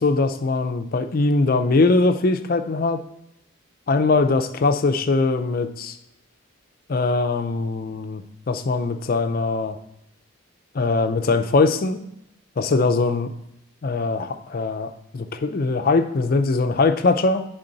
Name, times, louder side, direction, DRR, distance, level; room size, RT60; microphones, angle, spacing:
voice 1, 0.0-3.0 3.9-6.0 6.9-9.8 10.7-12.0 12.6-13.3 13.8-17.5, left 3 dB, 40° left, 8 dB, 0.4 m, -21 dB
9.9 x 3.8 x 3.9 m, 0.82 s
head